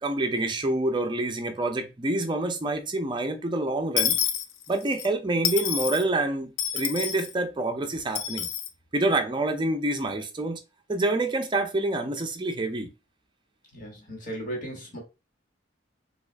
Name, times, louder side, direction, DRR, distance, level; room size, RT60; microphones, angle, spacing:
voice 1, 0.0-4.2 4.7-8.5 8.9-10.6 10.9-12.9, right 2 dB, 25° right, 0.5 m, -27 dB
Dishes pots and pans / Coin (dropping), 4.0-5.1 5.4-6.0 6.6-7.3 8.1-8.7, left 9 dB, 75° left, 0.5 m, -28 dB
voice 2, 13.7-15.0, right 1 dB, 45° left, 1.4 m, -36 dB
3.5 x 2.4 x 3.3 m
head